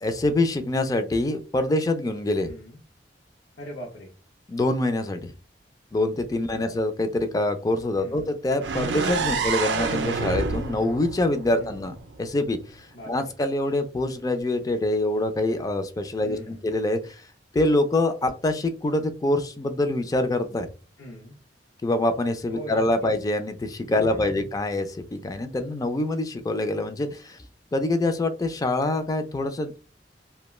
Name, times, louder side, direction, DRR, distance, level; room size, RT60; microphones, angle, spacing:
voice 1, 0.0-2.5 4.5-5.3 5.9-12.6 13.1-17.2 17.5-20.7 21.8-27.4 27.7-29.8, left 2 dB, 20° left, 8 dB, 0.3 m, -25 dB
voice 2, 2.5-2.8 3.6-4.1 6.6-6.7 8.0-8.3 9.2-9.5 11.5-11.9 12.9-13.1 14.1-14.2 16.2-16.7 21.0-21.4 22.5-23.1 24.0-24.5, equal, 80° left, -2 dB, 0.6 m, -41 dB
sound 1, 8.6-12.5, right 4 dB, 75° right, 0.4 m, -28 dB
2.2 x 2.2 x 3.0 m, 0.33 s
head